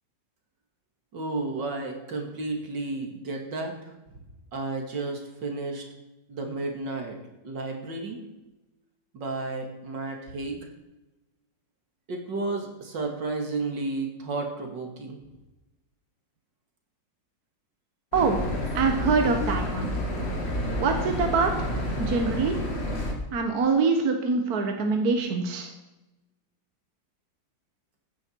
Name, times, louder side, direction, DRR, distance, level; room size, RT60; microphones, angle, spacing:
voice 1, 1.1-3.9 4.5-5.8 6.3-7.2 7.4-8.2 9.1-10.6 12.1-15.2, right 3 dB, 75° right, 3 dB, 2.9 m, -32 dB
sound 1, 18.1-23.1, equal, 35° left, 2.6 m, -29 dB
voice 2, 18.7-19.9 20.8-21.7 22.0-22.5 23.3-25.7, right 4 dB, 55° right, 4 dB, 1.7 m, -24 dB
15.0 x 9.8 x 4.6 m, 1.0 s
omnidirectional pair, 2.0 m